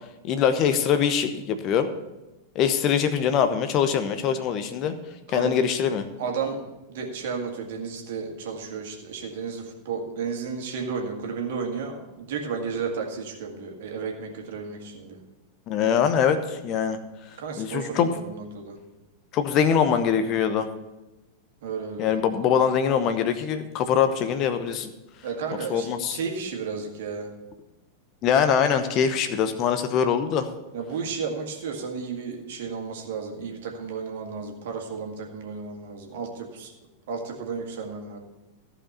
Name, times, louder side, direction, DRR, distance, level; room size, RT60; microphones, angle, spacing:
voice 1, 0.2-1.9 2.5-4.9 5.3-6.1 15.7-17.0 17.6-18.1 19.3-20.7 22.0-24.9 25.7-26.2 28.2-30.5, left 7 dB, 35° left, 9 dB, 0.9 m, -23 dB
voice 2, 6.2-6.6 6.9-15.2 17.4-18.8 21.6-22.1 25.2-27.3 30.7-36.7 37.1-38.2, right 5 dB, 55° right, 2 dB, 2.0 m, -33 dB
15.0 x 5.1 x 6.9 m, 1.0 s
figure-of-eight pair, 90°, 0 cm